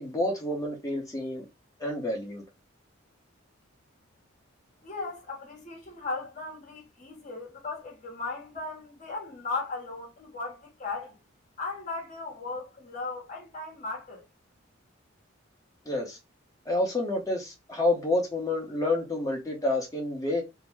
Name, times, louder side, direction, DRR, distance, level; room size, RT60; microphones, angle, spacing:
voice 1, 0.0-1.4 1.8-2.4 15.9-16.2 16.7-20.4, left 2 dB, 15° left, 0.8 m, -29 dB
voice 2, 4.8-11.2 11.6-14.3, left 3 dB, 35° left, 1.0 m, -37 dB
2.7 x 2.1 x 3.3 m
head